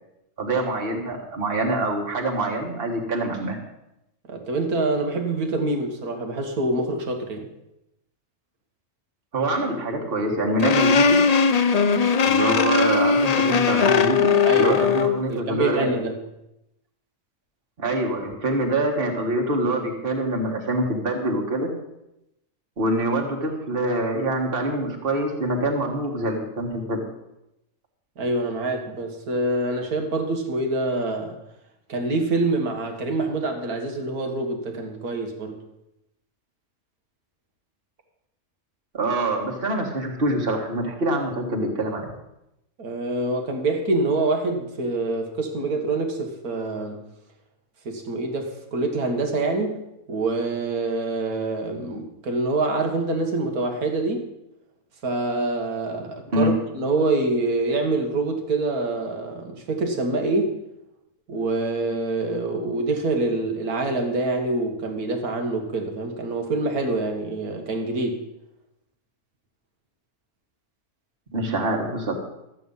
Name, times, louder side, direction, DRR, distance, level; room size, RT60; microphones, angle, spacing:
voice 1, 0.4-3.6 9.3-11.2 12.2-16.0 17.8-21.7 22.8-27.0 38.9-42.1 56.3-56.5 71.3-72.1, right 1 dB, 40° right, 1 dB, 1.8 m, -25 dB
voice 2, 4.3-7.5 14.4-14.8 15.3-16.2 28.2-31.4 31.9-35.6 42.8-47.0 47.9-49.8 50.1-54.3 55.0-60.6 61.3-68.2, right 2 dB, 85° right, 3 dB, 2.0 m, -25 dB
sound 1, 10.6-15.2, left 5 dB, 70° left, 0.3 m, -19 dB
13.0 x 8.5 x 5.5 m, 0.88 s
omnidirectional pair, 1.5 m